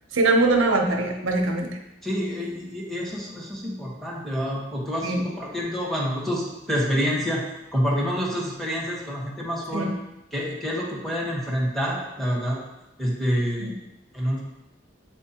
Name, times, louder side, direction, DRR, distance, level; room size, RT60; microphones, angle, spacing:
voice 1, 0.1-1.8 5.0-5.2 9.7-9.9 13.6-13.7, right 2 dB, 90° right, 3 dB, 0.8 m, -22 dB
voice 2, 2.0-7.4 7.7-9.9 10.3-12.6 13.0-13.7 14.1-14.4, equal, ahead, -5 dB, 1.2 m, -27 dB
7.4 x 4.4 x 2.9 m, 0.93 s
head